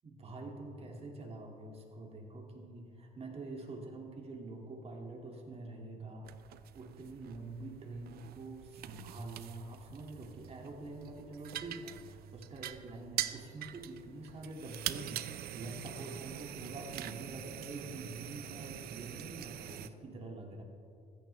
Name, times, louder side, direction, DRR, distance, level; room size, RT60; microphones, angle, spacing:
voice 1, 0.0-6.3 6.7-15.3 15.5-20.6, right 2 dB, 35° right, 0 dB, 2.5 m, -46 dB
sound 1, 6.2-19.9, right 12 dB, 65° right, 0.6 m, -44 dB
15.5 x 13.5 x 3.4 m, 2.5 s
cardioid pair, 110°, 17 cm